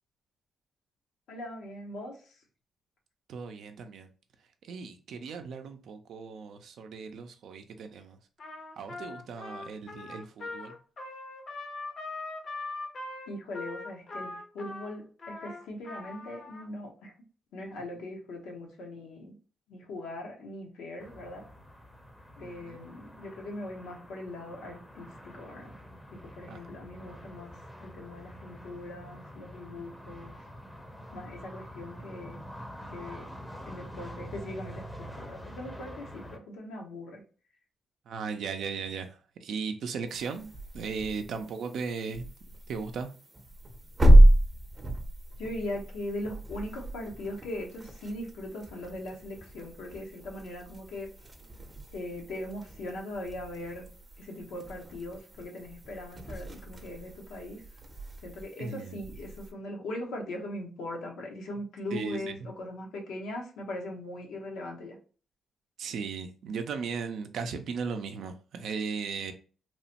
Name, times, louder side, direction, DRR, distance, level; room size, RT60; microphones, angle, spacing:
voice 1, 1.3-2.4 13.3-17.1 17.5-19.3 19.7-21.4 22.4-25.7 26.1-27.5 27.8-30.4 31.1-32.4 32.9-33.3 33.7-37.2 45.4-51.1 51.9-53.8 54.2-57.6 58.2-65.0, left 1 dB, 85° left, 0.8 m, -40 dB
voice 2, 3.3-4.1 4.6-8.2 8.8-10.8 22.4-22.9 26.5-26.7 38.1-42.3 42.7-43.1 58.6-59.0 61.9-62.4 65.8-69.3, right 5 dB, 75° right, 0.4 m, -37 dB
Trumpet, 8.4-16.7, left 2 dB, 60° left, 0.7 m, -41 dB
sound 1, 21.0-36.4, equal, 10° left, 0.6 m, -46 dB
sound 2, 40.1-59.5, right 1 dB, 30° right, 0.6 m, -28 dB
3.0 x 2.1 x 2.8 m
cardioid pair, 70°, 0 cm